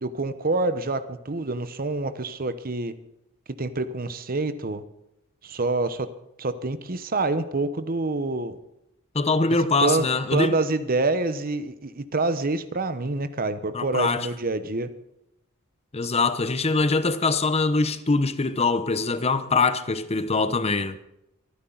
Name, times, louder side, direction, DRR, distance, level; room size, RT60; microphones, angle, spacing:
voice 1, 0.0-2.9 3.6-4.8 5.4-6.1 6.4-8.6 9.8-14.9, right 3 dB, 45° right, 1.0 m, -27 dB
voice 2, 9.1-10.6 13.7-14.3 15.9-21.0, left 3 dB, 30° left, 0.8 m, -23 dB
24.0 x 10.0 x 4.0 m
head